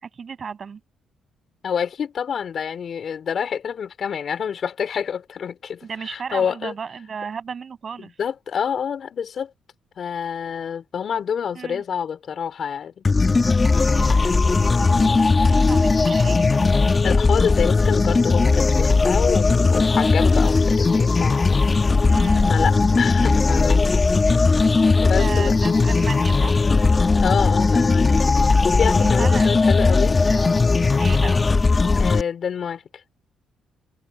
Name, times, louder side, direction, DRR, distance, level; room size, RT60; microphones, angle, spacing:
voice 1, 0.0-0.8 5.8-8.1 11.6-11.8 13.9-16.5 22.1-22.6 25.1-26.6 28.9-30.5 31.0-31.4, right 6 dB, 45° right, 7.2 m, -34 dB
voice 2, 1.6-6.7 8.0-9.5 10.0-13.0 15.0-15.2 17.0-21.6 22.5-23.9 24.3-24.6 25.0-25.5 27.2-28.3 28.6-30.2 32.0-32.8, left 7 dB, 55° left, 3.8 m, -27 dB
sound 1, 13.0-32.2, left 3 dB, 30° left, 1.5 m, -18 dB
cardioid pair, 90°, 0 cm